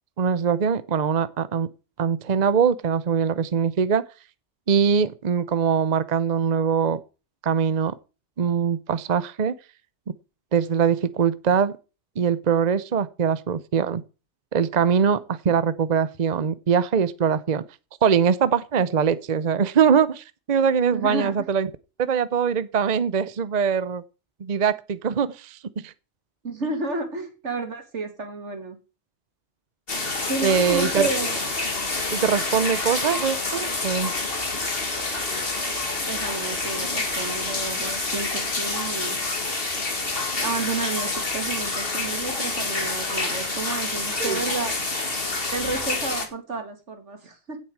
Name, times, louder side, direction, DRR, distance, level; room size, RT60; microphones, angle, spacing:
voice 1, 0.2-1.7 2.0-4.0 4.7-7.0 7.4-7.9 8.4-9.5 10.5-11.7 12.2-14.0 14.5-17.6 18.0-21.7 22.0-24.0 24.4-25.6 25.8-25.9 30.4-31.1 32.1-34.1 44.2-44.4, right 7 dB, 40° right, 0.8 m, -22 dB
voice 2, 20.9-21.3 26.4-28.8 30.2-31.4 36.1-39.2 40.4-44.8 45.0-45.1 45.5-47.6, right 3 dB, 80° right, 2.6 m, -31 dB
sound 1, 29.9-46.3, left 3 dB, 55° left, 2.4 m, -27 dB
16.0 x 7.3 x 4.7 m
omnidirectional pair, 1.2 m